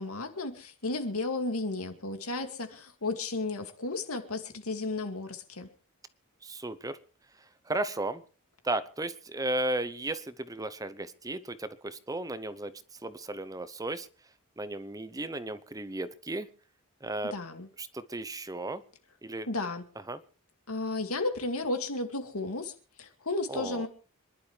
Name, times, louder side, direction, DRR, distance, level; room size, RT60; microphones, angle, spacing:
voice 1, 0.0-5.7 17.3-17.7 19.5-19.8 20.7-22.7 23.0-23.9, left 2 dB, 85° left, 6 dB, 2.3 m, -33 dB
voice 2, 6.4-7.0 7.7-8.2 8.6-14.1 14.6-16.5 17.0-17.4 17.8-18.8 19.2-19.5 20.1-20.2 23.5-23.9, right 2 dB, 15° right, 13 dB, 0.8 m, -34 dB
26.5 x 11.5 x 3.3 m, 0.38 s
head